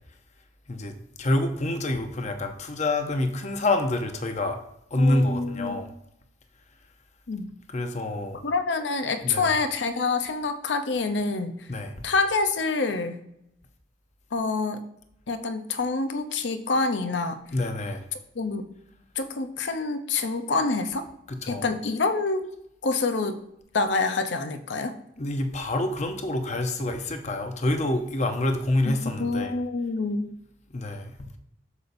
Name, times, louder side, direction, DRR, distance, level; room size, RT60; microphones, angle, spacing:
voice 1, 0.7-4.6 4.9-5.9 7.7-8.4 9.2-9.5 11.7-12.1 17.5-18.0 21.3-21.6 25.2-29.5 30.7-31.4, left 1 dB, 40° left, 6 dB, 0.7 m, -27 dB
voice 2, 5.0-5.8 7.3-7.5 8.4-11.7 12.0-13.2 14.3-14.8 15.3-17.4 18.4-18.7 19.2-21.1 21.5-22.4 22.8-23.4 23.7-24.9 28.9-30.3, left 3 dB, 75° left, 8 dB, 0.7 m, -27 dB
8.1 x 6.8 x 2.6 m, 0.80 s
head